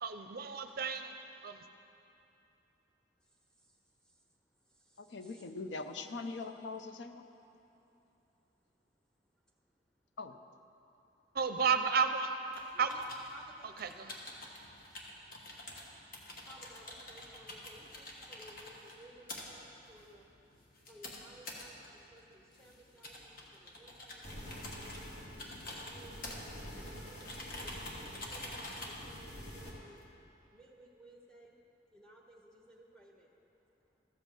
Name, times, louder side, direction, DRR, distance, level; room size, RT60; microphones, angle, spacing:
voice 1, 0.0-1.2 1.4-1.7 11.3-12.4 12.8-13.0 13.6-14.2, right 5 dB, 55° right, 8 dB, 0.5 m, -32 dB
voice 2, 3.2-4.2 4.6-5.5 7.5-8.0 9.5-9.7 10.3-10.4 12.5-12.9 13.3-13.8 16.4-20.3 20.9-25.2 25.6-26.3 26.8-30.0 30.5-31.6 31.9-34.0, right 1 dB, 5° left, -1 dB, 1.2 m, -59 dB
voice 3, 5.0-7.2 10.2-10.3, left 3 dB, 75° left, 8 dB, 0.6 m, -42 dB
sound 1, 12.5-30.0, left 1 dB, 55° left, 1.5 m, -48 dB
sound 2, 24.2-29.7, equal, 40° left, 2.3 m, -47 dB
14.0 x 5.4 x 7.5 m, 2.9 s
head